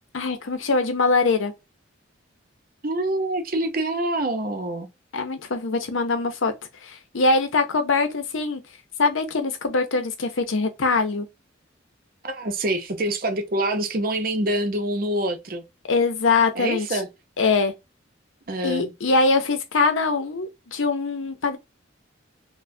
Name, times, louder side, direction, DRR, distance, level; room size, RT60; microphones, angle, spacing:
voice 1, 0.1-1.5 5.1-6.5 6.8-8.6 9.0-11.3 15.9-17.0 17.4-17.7 18.6-21.6, left 3 dB, 80° left, 0.7 m, -23 dB
voice 2, 2.8-4.9 12.2-15.6 16.6-17.1 18.5-18.9, right 1 dB, 45° right, 0.7 m, -26 dB
4.1 x 2.2 x 2.7 m
head